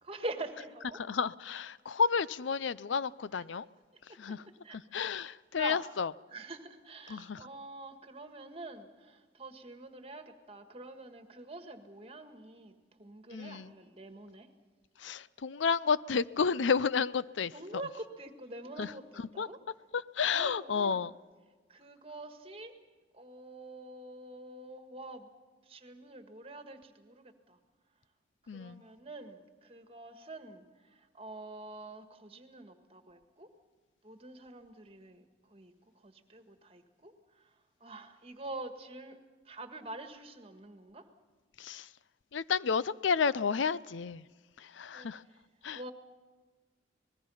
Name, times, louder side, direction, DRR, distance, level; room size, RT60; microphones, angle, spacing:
voice 1, 0.0-1.0 3.3-3.4 4.6-4.8 5.5-5.8 6.3-12.7 13.0-14.5 17.5-19.6 20.3-21.1 21.7-22.7 23.1-25.3 25.6-27.6 28.5-33.5 34.0-35.2 35.5-35.7 36.0-37.5 37.8-39.2 39.5-41.0 44.9-45.1 45.7-45.9, right 2 dB, 30° right, 6 dB, 1.7 m, -46 dB
voice 2, 1.0-3.6 4.2-4.4 4.9-6.1 7.1-7.4 13.3-13.7 15.0-17.5 18.8-18.9 19.4-19.5 19.9-21.1 28.5-28.8 41.6-41.9 42.3-44.2 44.8-45.2 45.6-45.8, left 6 dB, 85° left, 18 dB, 0.5 m, -31 dB
26.5 x 20.0 x 5.7 m, 1.4 s
head